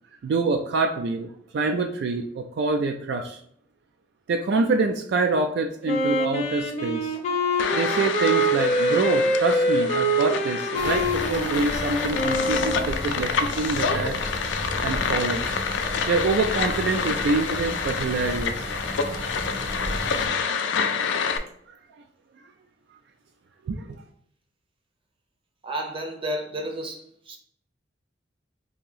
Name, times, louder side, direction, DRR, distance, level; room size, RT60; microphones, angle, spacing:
voice 1, 0.2-3.4 4.3-7.1 7.7-14.2 14.8-18.7 19.4-19.6 20.4-20.6 22.9-23.0 23.7-24.0, right 3 dB, 65° right, 0.3 m, -26 dB
Wind instrument woodwind instrument, 5.8-13.0, equal, 35° left, 0.7 m, -25 dB
sound 1, 7.6-21.4, left 6 dB, 80° left, 0.4 m, -28 dB
sound 2, 10.7-20.3, equal, 80° right, 1.0 m, -34 dB
voice 2, 25.6-27.4, right 1 dB, 30° right, 0.6 m, -32 dB
2.8 x 2.7 x 3.8 m
head